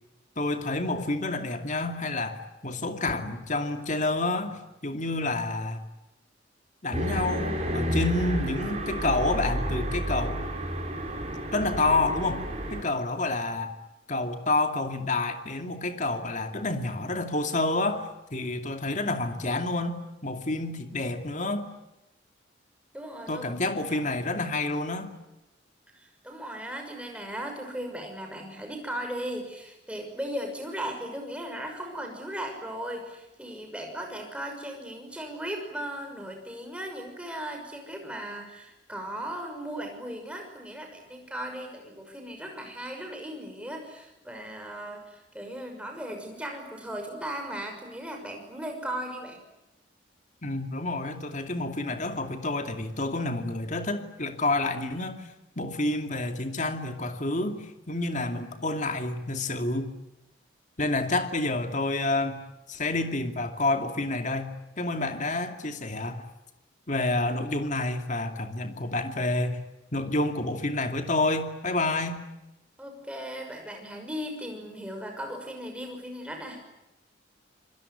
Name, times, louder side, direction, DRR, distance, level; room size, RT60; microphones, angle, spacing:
voice 1, 0.4-5.8 6.8-10.4 11.5-12.4 12.7-13.7 14.1-21.7 23.3-25.1 50.4-55.3 55.6-59.9 60.8-66.3 66.9-69.6 69.9-72.2, left 2 dB, 40° left, 6 dB, 2.5 m, -29 dB
sound 1, 6.9-12.8, equal, 35° right, 6.0 m, -31 dB
voice 2, 22.9-23.5 23.7-24.1 25.9-49.4 72.8-76.6, equal, 5° right, 3 dB, 6.1 m, -37 dB
27.0 x 21.0 x 9.9 m, 0.95 s
head